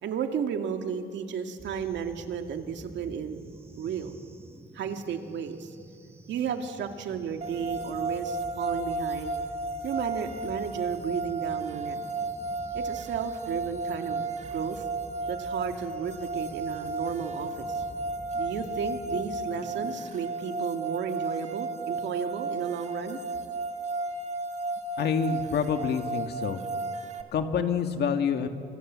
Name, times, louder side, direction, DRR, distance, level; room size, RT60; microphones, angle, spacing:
voice 1, 0.0-3.4 3.8-4.2 4.7-5.7 6.3-9.4 9.8-12.0 12.7-14.9 15.3-17.8 18.3-23.2, right 7 dB, 70° right, 6 dB, 2.2 m, -33 dB
sound 1, 1.6-20.1, right 2 dB, 10° right, 1.5 m, -49 dB
sound 2, 7.4-27.2, right 3 dB, 35° right, 1.5 m, -33 dB
voice 2, 25.0-26.6 27.3-28.5, left 6 dB, 60° left, 7 dB, 1.9 m, -27 dB
30.0 x 26.0 x 7.6 m, 2.3 s
cardioid pair, 175°, 19 cm